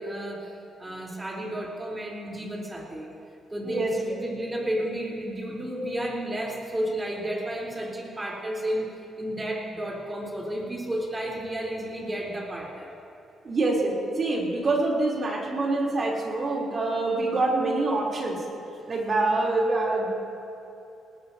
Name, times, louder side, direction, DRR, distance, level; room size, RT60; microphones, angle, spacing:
voice 1, 0.0-3.1 3.5-8.9 9.2-12.9, right 1 dB, 20° right, -2 dB, 4.1 m, -32 dB
voice 2, 3.6-4.2 13.4-18.4 18.9-20.1, right 2 dB, 40° right, -2 dB, 3.8 m, -26 dB
20.0 x 19.0 x 3.0 m, 2.8 s
cardioid pair, 90°, 0 cm